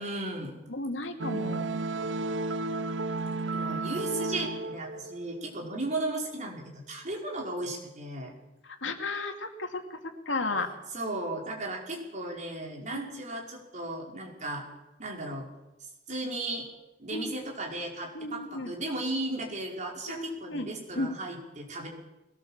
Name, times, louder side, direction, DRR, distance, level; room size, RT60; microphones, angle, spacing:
voice 1, 0.0-0.5 3.5-8.3 10.9-14.6 15.0-15.5 16.1-16.7 17.0-21.9, right 2 dB, 40° right, 0 dB, 5.0 m, -35 dB
voice 2, 0.7-1.7 8.6-10.0 10.3-10.7 17.1-17.3 18.1-18.7 20.1-20.7 21.0-21.1, left 2 dB, 80° left, 5 dB, 2.5 m, -33 dB
sound 1, 1.2-5.7, right 2 dB, 85° right, 0.8 m, -32 dB
22.0 x 18.5 x 7.4 m, 0.98 s
head